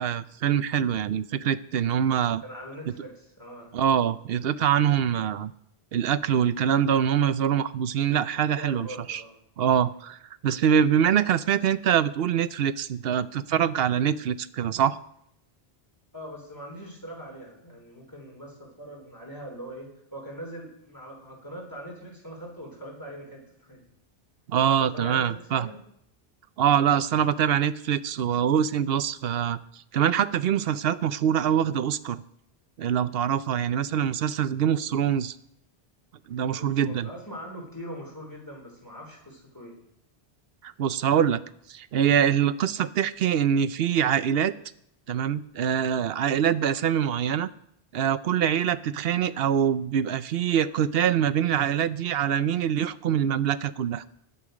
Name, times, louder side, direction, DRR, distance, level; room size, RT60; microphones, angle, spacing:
voice 1, 0.0-2.4 3.7-5.5 5.9-9.2 9.6-15.0 24.5-25.7 26.6-32.2 32.8-35.3 36.3-37.1 40.6-41.4 41.7-44.5 45.1-47.5 47.9-54.0, right 9 dB, 70° right, 15 dB, 0.8 m, -24 dB
voice 2, 2.4-3.7 8.6-9.4 16.1-23.8 24.6-25.8 36.4-39.8, equal, 20° left, -1 dB, 3.5 m, -42 dB
20.0 x 6.9 x 5.1 m, 0.74 s
omnidirectional pair, 1.1 m